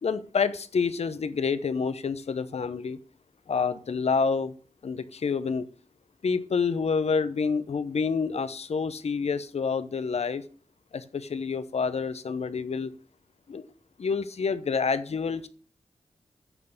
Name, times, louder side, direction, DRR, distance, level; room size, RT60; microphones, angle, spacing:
voice 1, 0.0-3.0 3.5-4.5 4.8-5.7 6.2-10.4 10.9-12.9 13.5-13.6 14.0-15.5, left 5 dB, 65° left, 0.8 m, -28 dB
8.9 x 4.0 x 6.6 m
cardioid pair, 50°, 12 cm